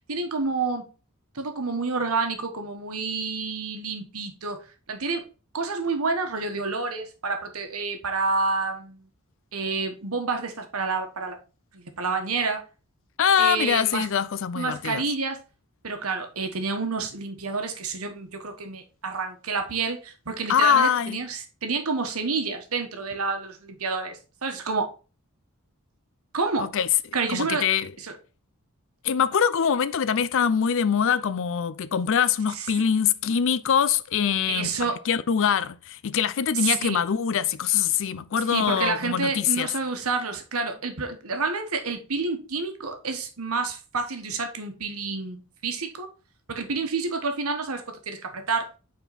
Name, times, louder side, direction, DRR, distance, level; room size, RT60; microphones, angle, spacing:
voice 1, 0.1-0.9 1.3-5.2 5.5-9.1 9.5-11.4 11.7-12.6 13.4-14.1 14.5-15.4 15.8-24.9 26.3-26.7 27.1-27.6 28.0-28.1 32.5-32.7 34.5-35.0 36.5-37.0 38.5-46.1 46.5-48.7, right 4 dB, 75° right, 1.3 m, -29 dB
voice 2, 13.2-15.0 20.5-21.2 26.6-26.9 27.3-27.9 29.0-39.7, left 7 dB, 60° left, 0.4 m, -23 dB
5.6 x 4.4 x 4.1 m
head